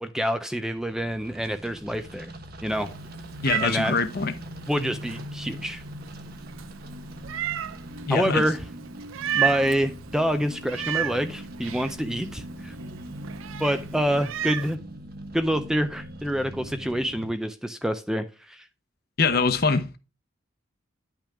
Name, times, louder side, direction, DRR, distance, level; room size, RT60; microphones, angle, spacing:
voice 1, 0.0-2.3 2.6-2.9 3.6-4.0 4.7-5.8 8.1-8.6 9.3-12.7 13.6-14.8 15.3-18.7, equal, 5° right, 0.4 m, -27 dB
sound 1, 0.8-17.3, equal, 50° right, 1.1 m, -41 dB
Meow, 2.7-14.8, right 10 dB, 80° right, 0.5 m, -34 dB
voice 2, 3.4-4.3 8.0-8.4 19.2-20.0, left 4 dB, 50° left, 0.8 m, -23 dB
10.0 x 5.9 x 3.4 m
head